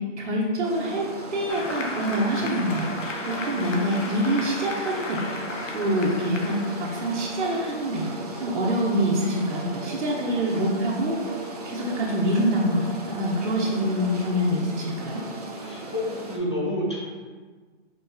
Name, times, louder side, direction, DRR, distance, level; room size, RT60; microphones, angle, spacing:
voice 1, 0.2-2.9 3.3-5.2 5.7-8.1 8.4-11.2 11.7-15.2, equal, 70° right, -4 dB, 1.0 m, -25 dB
sound 1, 0.6-16.4, right 1 dB, 35° right, 0.5 m, -37 dB
Applause, 1.5-8.7, left 2 dB, 90° left, 0.8 m, -35 dB
voice 2, 15.5-16.0 16.3-17.0, left 1 dB, 25° left, -5 dB, 0.5 m, -28 dB
5.4 x 3.0 x 2.3 m, 1.4 s
hypercardioid pair, 165°, 37 cm